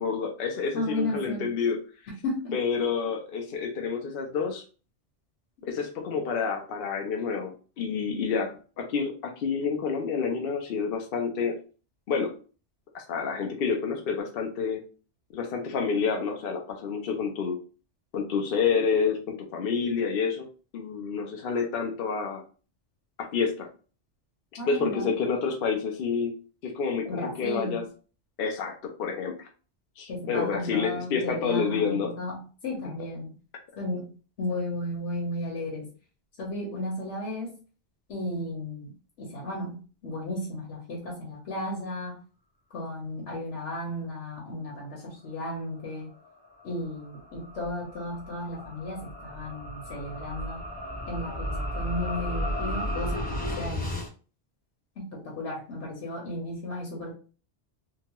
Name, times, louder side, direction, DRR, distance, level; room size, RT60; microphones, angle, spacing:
voice 1, 0.0-1.8 2.5-4.6 5.6-11.6 12.1-12.3 12.9-14.8 15.3-17.6 18.1-20.5 20.7-22.4 23.2-23.7 24.6-26.3 26.6-27.8 28.4-29.5 30.0-32.1, left 5 dB, 60° left, 2 dB, 0.7 m, -28 dB
voice 2, 0.7-1.5 2.2-2.5 24.6-25.1 27.0-27.8 30.1-33.4 33.8-34.1 34.4-35.9 36.4-37.6 38.1-38.9 39.2-39.8 40.0-42.2 42.7-46.1 46.6-50.6 51.1-53.9 55.0-57.1, left 1 dB, 90° left, -2 dB, 1.2 m, -34 dB
sound 1, 46.3-54.1, equal, 15° left, 0.4 m, -34 dB
2.9 x 2.2 x 2.8 m, 0.36 s
omnidirectional pair, 1.2 m